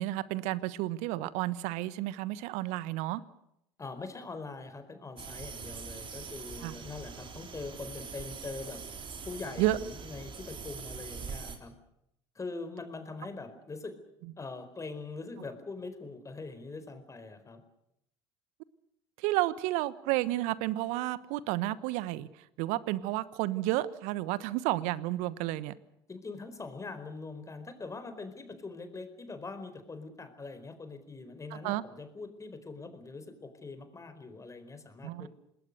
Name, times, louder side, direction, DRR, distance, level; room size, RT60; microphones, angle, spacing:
voice 1, 0.0-3.2 6.6-6.7 9.6-9.8 19.2-25.7 31.5-31.8 35.0-35.3, right 16 dB, 65° right, 18 dB, 1.2 m, -31 dB
voice 2, 3.8-8.8 9.2-11.7 12.3-13.9 14.4-17.6 26.1-35.3, left 3 dB, 25° left, 9 dB, 4.5 m, -43 dB
sound 1, 5.2-11.6, right 5 dB, 40° right, 3.9 m, -43 dB
27.0 x 20.5 x 6.7 m, 0.79 s
hypercardioid pair, 65°, 13 cm